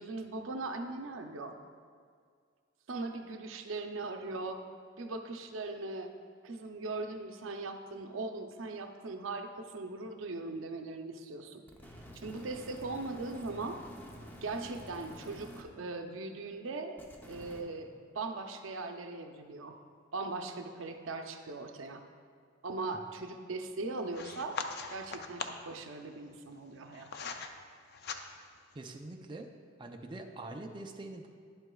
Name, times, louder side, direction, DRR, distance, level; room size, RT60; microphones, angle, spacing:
voice 1, 0.0-1.6 2.9-4.6 5.0-6.1 6.4-11.6 12.1-13.8 14.4-17.0 17.3-19.7 20.1-22.0 22.6-24.6 24.9-27.3, right 3 dB, 85° right, 5 dB, 0.6 m, -39 dB
sound 1, 11.7-15.6 17.0-17.6, equal, 10° left, 0.7 m, -49 dB
sound 2, 24.1-25.7 26.5-27.5 27.9-28.6, left 5 dB, 55° left, 0.5 m, -41 dB
voice 2, 28.7-29.5 29.8-31.3, right 2 dB, 25° right, 3 dB, 0.4 m, -44 dB
10.5 x 7.8 x 2.3 m, 2.1 s
head